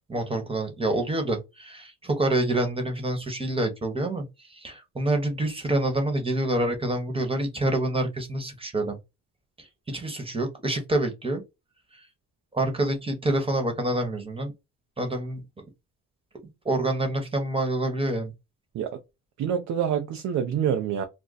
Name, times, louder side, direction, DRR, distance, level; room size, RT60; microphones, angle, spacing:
voice 1, 0.1-9.0 9.6-11.4 11.9-12.0 12.5-14.5 15.0-15.4 16.6-18.3, right 1 dB, 20° right, 1.1 m, -27 dB
voice 2, 19.4-21.0, right 8 dB, 70° right, 0.6 m, -26 dB
2.5 x 2.2 x 3.9 m
cardioid pair, 90°, 30 cm